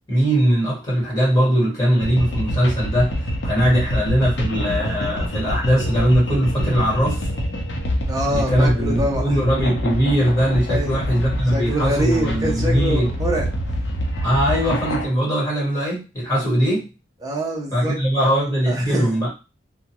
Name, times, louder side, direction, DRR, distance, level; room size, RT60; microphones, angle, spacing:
voice 1, 0.1-3.1 3.4-7.3 8.3-13.1 14.2-16.9 17.7-19.3, equal, 20° left, -6 dB, 1.4 m, -20 dB
sound 1, 2.0-15.0, equal, 75° left, 0.7 m, -25 dB
voice 2, 8.1-9.4 10.7-11.0 11.5-13.5 17.2-18.3 18.7-19.2, right 1 dB, 20° right, -1 dB, 0.7 m, -25 dB
2.5 x 2.3 x 2.9 m, 0.30 s
head